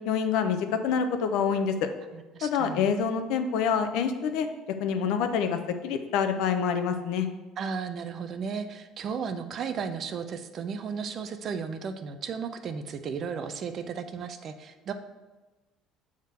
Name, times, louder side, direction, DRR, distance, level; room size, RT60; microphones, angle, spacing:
voice 1, 0.0-1.9 2.4-4.5 4.8-7.3, left 6 dB, 70° left, 8 dB, 0.7 m, -26 dB
voice 2, 2.1-2.9 7.6-14.9, right 6 dB, 35° right, 9 dB, 0.4 m, -34 dB
7.5 x 3.6 x 5.7 m, 1.2 s
cardioid pair, 175°, 0 cm